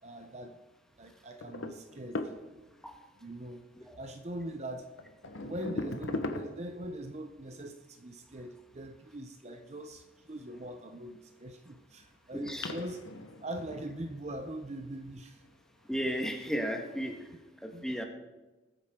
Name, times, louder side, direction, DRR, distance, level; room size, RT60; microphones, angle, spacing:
voice 1, 0.0-0.6 1.0-2.3 3.2-3.7 4.0-4.9 5.4-13.0 13.4-15.4 17.7-17.9, right 1 dB, 35° right, 6 dB, 0.7 m, -42 dB
sound 1, 1.4-2.8 4.3-4.4 5.0-6.9 10.7-11.4 12.0-12.1 12.5-14.5 15.4-15.7 16.5-16.6 17.1-17.2, left 2 dB, 80° left, 1.2 m, -39 dB
voice 2, 12.3-12.7 15.9-17.2 17.6-18.0, equal, 5° left, 3 dB, 1.4 m, -34 dB
21.0 x 8.7 x 3.7 m, 1.1 s
head